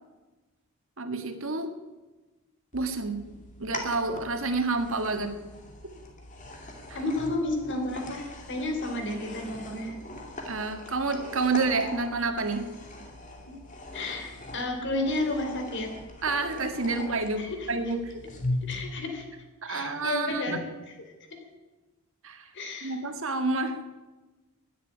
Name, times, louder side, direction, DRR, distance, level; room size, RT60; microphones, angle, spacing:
voice 1, 1.0-1.7 2.7-3.2 3.6-5.4 6.9-7.0 10.5-12.7 16.2-18.2 19.6-20.6 22.2-22.5 22.8-23.8, right 3 dB, 60° right, 7 dB, 1.7 m, -29 dB
sound 1, 2.7-18.8, left 2 dB, 35° left, 2.6 m, -40 dB
voice 2, 6.9-10.0 13.4-13.5 13.9-15.9 17.4-17.7 18.7-19.2 19.7-20.7 22.5-23.0, left 2 dB, 55° left, 4 dB, 3.3 m, -31 dB
12.5 x 10.5 x 10.0 m, 1.2 s
head